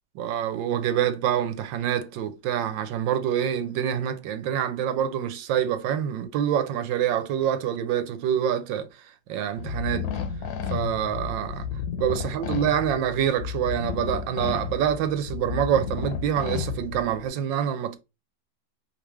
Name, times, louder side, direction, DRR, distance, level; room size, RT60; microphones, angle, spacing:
voice 1, 0.2-8.9 9.3-10.1 10.7-11.7 12.0-18.0, right 9 dB, 80° right, 1.4 m, -26 dB
sound 1, 9.6-17.3, left 7 dB, 80° left, 1.4 m, -32 dB
5.2 x 3.2 x 3.1 m
omnidirectional pair, 2.0 m